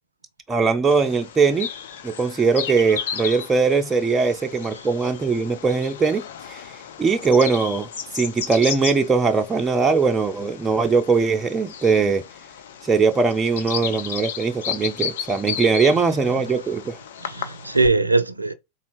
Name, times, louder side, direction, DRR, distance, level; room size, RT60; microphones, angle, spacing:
voice 1, 0.5-1.7 2.0-6.2 6.5-6.6 7.0-7.9 8.1-12.2 12.8-17.0, right 4 dB, 15° right, 0.5 m, -20 dB
Bird vocalization bird call bird song, 0.9-17.9, left 8 dB, 60° left, 0.6 m, -34 dB
voice 2, 15.9-16.5 17.3-18.5, right 3 dB, 80° right, 0.4 m, -22 dB
4.0 x 2.3 x 3.3 m
figure-of-eight pair, 90°, 0 cm